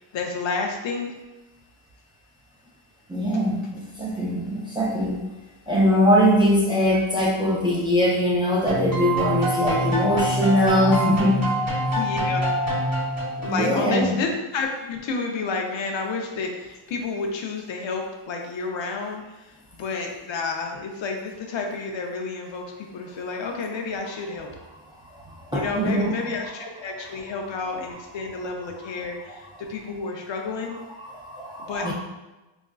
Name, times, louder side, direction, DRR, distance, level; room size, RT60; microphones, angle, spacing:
voice 1, 0.1-1.2 11.9-12.5 13.4-24.5 25.5-30.8 31.6-31.9, left 4 dB, 65° left, 2 dB, 0.6 m, -30 dB
voice 2, 3.1-5.2 5.7-11.4 13.4-14.1 25.5-26.1 31.0-31.9, equal, 10° right, -5 dB, 0.4 m, -21 dB
sound 1, 8.7-13.9, right 1 dB, 30° right, 1.0 m, -25 dB
3.6 x 2.4 x 2.3 m, 1.1 s
cardioid pair, 110°, 50 cm